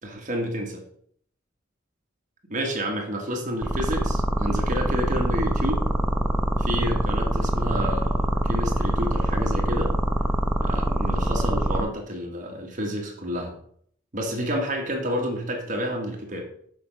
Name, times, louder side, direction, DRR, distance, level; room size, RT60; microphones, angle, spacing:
voice 1, 0.0-0.8 2.5-5.8 6.6-9.9 10.6-13.5 14.1-16.4, equal, 40° right, 0 dB, 1.5 m, -29 dB
sound 1, 3.6-11.8, right 1 dB, 5° right, 0.5 m, -23 dB
6.9 x 4.9 x 5.4 m, 0.63 s
head